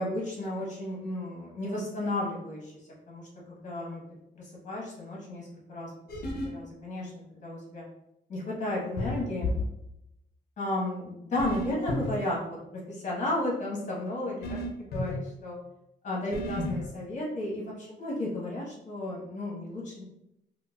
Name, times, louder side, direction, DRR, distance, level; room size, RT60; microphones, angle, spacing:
voice 1, 0.0-2.7 3.1-3.2 3.5-4.0 4.3-5.9 6.2-7.8 8.3-9.5 10.6-12.6 12.9-15.6 16.0-20.0, left 1 dB, 45° left, -4 dB, 1.1 m, -33 dB
sound 1, 6.1-6.5 9.0-9.6 11.4-12.1 14.4-15.1 16.3-16.9, left 2 dB, 60° left, 0.5 m, -32 dB
3.9 x 2.1 x 2.3 m, 0.83 s
wide cardioid pair, 170°, 18 cm